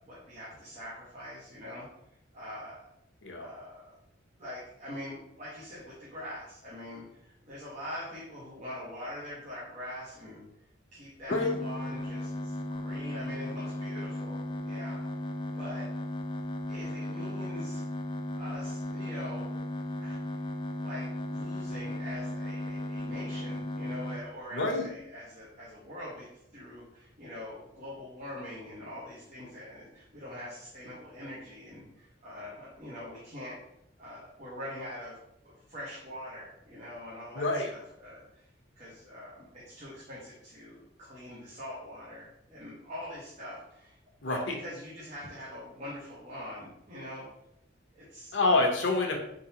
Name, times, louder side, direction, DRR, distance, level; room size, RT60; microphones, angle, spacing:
voice 1, 0.1-1.9 2.3-2.8 3.4-4.0 4.4-10.4 10.9-15.0 15.5-15.9 16.7-17.8 18.3-19.5 20.0-20.2 20.7-33.6 34.0-35.2 35.4-38.4 38.8-43.9 44.3-47.3 47.9-48.3, left 1 dB, 40° right, -8 dB, 1.3 m, -43 dB
voice 2, 11.3-11.6 24.5-24.9 37.3-37.7 44.2-44.5 48.3-49.2, left 2 dB, 85° left, 2 dB, 0.9 m, -27 dB
sound 1, 11.3-24.2, left 1 dB, 25° left, 0.3 m, -36 dB
4.7 x 3.8 x 2.9 m, 0.79 s
head